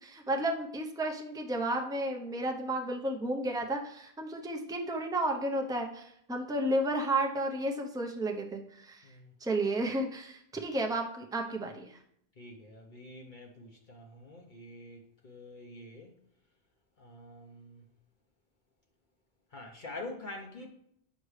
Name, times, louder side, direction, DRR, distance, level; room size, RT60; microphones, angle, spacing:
voice 1, 0.0-9.0 9.4-12.0, right 1 dB, 5° right, 0.7 m, -32 dB
voice 2, 12.4-16.1 17.0-17.8 19.5-20.7, left 2 dB, 55° left, 1.0 m, -46 dB
7.9 x 5.9 x 3.3 m
omnidirectional pair, 1.0 m